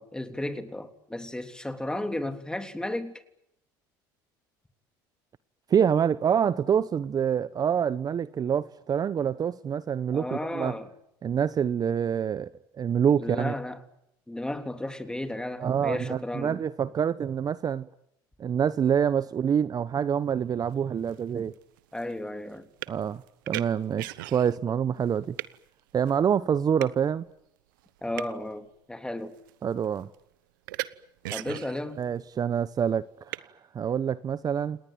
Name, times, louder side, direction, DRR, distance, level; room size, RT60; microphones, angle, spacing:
voice 1, 0.0-3.1 10.1-10.9 13.2-13.8 14.3-16.6 21.9-22.7 28.0-29.4 31.3-32.1, left 1 dB, 5° left, 3.4 m, -34 dB
voice 2, 5.7-10.8 11.2-12.5 12.8-13.5 15.6-17.9 18.4-21.5 22.9-23.2 23.5-25.4 25.9-27.2 29.6-30.1 32.0-34.8, right 8 dB, 40° right, 1.0 m, -26 dB
sound 1, 20.6-20.7 21.0-24.7 25.0-25.6 26.1-26.2 26.8-27.0 27.8-28.5 29.1-29.5 29.8-30.2 30.7-30.9 31.2-32.0 33.3-33.4, right 17 dB, 85° right, 1.1 m, -37 dB
30.0 x 19.0 x 9.2 m
hypercardioid pair, 80°, 11 cm